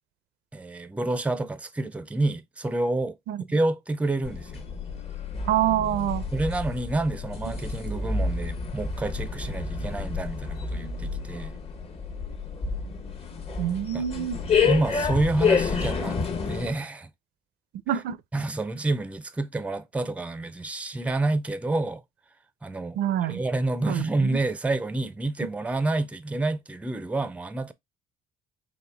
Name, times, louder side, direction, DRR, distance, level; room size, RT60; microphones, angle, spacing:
voice 1, 0.5-4.6 6.3-11.5 13.9-14.0 14.7-16.2 16.5-17.1 18.3-22.0 22.6-27.7, right 2 dB, 10° right, 0.5 m, -28 dB
sound 1, 4.2-16.7, left 5 dB, 35° left, 1.0 m, -29 dB
voice 2, 5.5-6.2 13.6-14.4 17.9-18.2 23.0-23.4 23.9-24.4, right 11 dB, 70° right, 0.6 m, -26 dB
4.3 x 3.1 x 3.3 m
cardioid pair, 110°, 17 cm